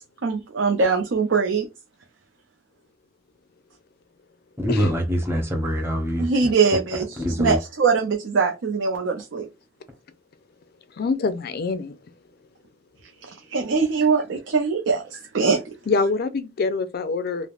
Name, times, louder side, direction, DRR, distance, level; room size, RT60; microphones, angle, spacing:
voice 1, 0.2-1.7 6.2-9.4 13.5-15.6, right 5 dB, 80° right, 0.5 m, -22 dB
voice 2, 4.6-6.5 7.2-7.6, equal, 15° right, 0.8 m, -24 dB
voice 3, 11.0-11.9 15.9-17.5, left 4 dB, 55° left, 0.4 m, -25 dB
3.3 x 2.0 x 2.3 m
head